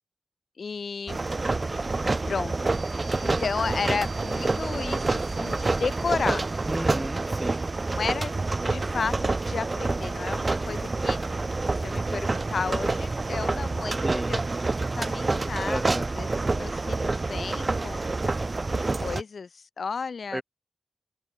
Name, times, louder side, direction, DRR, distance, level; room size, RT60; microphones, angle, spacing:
voice 1, 0.6-1.2 2.3-2.7 3.2-6.4 7.9-8.3 8.7-11.2 11.7-14.4 14.9-18.2 18.7-20.4, left 5 dB, 70° left, 2.2 m, -33 dB
sound 1, 1.1-19.2, right 3 dB, 35° right, 1.8 m, -28 dB
sound 2, 2.7-8.5, right 4 dB, 50° right, 6.5 m, -48 dB
voice 2, 6.6-7.6 14.0-14.4 15.6-16.1 20.3-20.4, right 1 dB, 10° right, 1.0 m, -32 dB
open air
wide cardioid pair, 105°, 0 cm